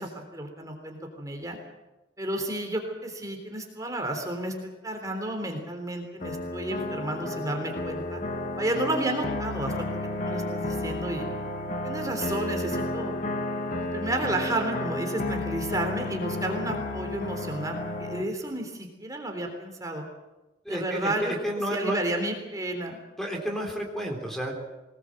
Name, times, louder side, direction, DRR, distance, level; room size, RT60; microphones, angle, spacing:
voice 1, 0.0-1.6 2.2-4.5 4.8-8.2 8.6-9.9 10.2-11.3 11.8-13.1 13.8-20.1 20.7-21.3 21.7-23.0, right 1 dB, 20° right, 3 dB, 3.5 m, -31 dB
sound 1, 6.2-18.2, left 2 dB, 45° left, 1.9 m, -32 dB
voice 2, 20.7-22.0 23.2-24.5, equal, ahead, 1 dB, 3.5 m, -31 dB
23.0 x 19.5 x 7.8 m, 1.1 s
head